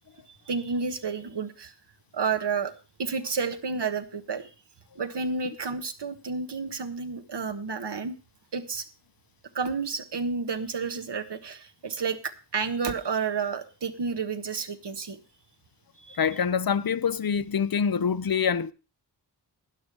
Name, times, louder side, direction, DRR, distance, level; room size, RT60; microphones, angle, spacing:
voice 1, 0.5-1.7 2.1-2.7 3.0-4.5 5.0-8.2 8.5-8.8 9.5-15.2 16.0-16.3, right 5 dB, 75° right, 1.3 m, -30 dB
voice 2, 16.2-18.7, left 7 dB, 55° left, 0.6 m, -25 dB
12.5 x 10.0 x 4.7 m
wide cardioid pair, 85°, 42 cm